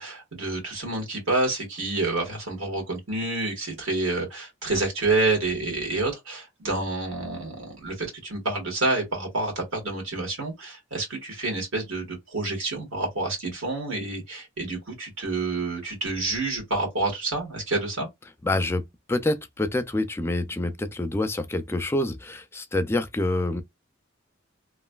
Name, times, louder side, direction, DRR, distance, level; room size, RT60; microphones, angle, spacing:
voice 1, 0.0-18.1, right 2 dB, 75° right, 1.6 m, -28 dB
voice 2, 18.4-23.6, left 2 dB, 10° left, 0.3 m, -27 dB
3.1 x 2.5 x 2.3 m
head